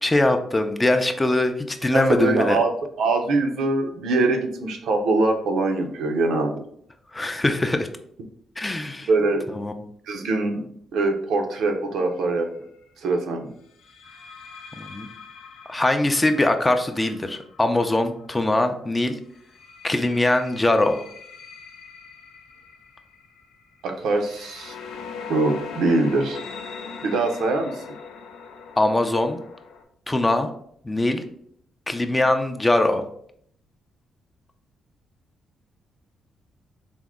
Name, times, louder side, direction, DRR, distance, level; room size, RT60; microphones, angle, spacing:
voice 1, 0.0-2.6 7.1-7.9 8.6-9.1 9.5-9.7 14.8-15.1 15.7-19.2 19.8-21.0 28.8-29.4 30.1-30.5 30.9-31.2 31.9-33.0, left 2 dB, 20° left, 7 dB, 0.4 m, -22 dB
voice 2, 1.9-2.7 3.0-6.6 9.1-9.6 10.1-10.6 10.9-12.5 13.0-13.5 23.8-24.7 25.3-26.4 27.0-27.8, right 3 dB, 80° right, 3 dB, 0.5 m, -23 dB
sound 1, 12.0-12.3 13.8-18.6 19.4-29.8, left 5 dB, 85° left, 0.4 m, -41 dB
3.5 x 2.0 x 3.5 m, 0.66 s
supercardioid pair, 65°, 0 cm